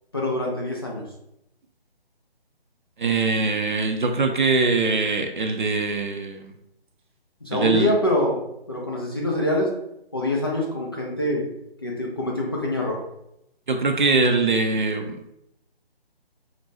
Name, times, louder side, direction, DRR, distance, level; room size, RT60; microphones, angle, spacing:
voice 1, 0.1-1.0 7.4-8.4 8.7-9.7 10.1-11.4 11.8-13.0, left 1 dB, 25° left, -2 dB, 0.5 m, -25 dB
voice 2, 3.0-6.5 7.5-7.9 13.7-15.3, right 3 dB, 50° right, 4 dB, 0.6 m, -22 dB
4.9 x 2.2 x 4.0 m, 0.82 s
figure-of-eight pair, 150°, 31 cm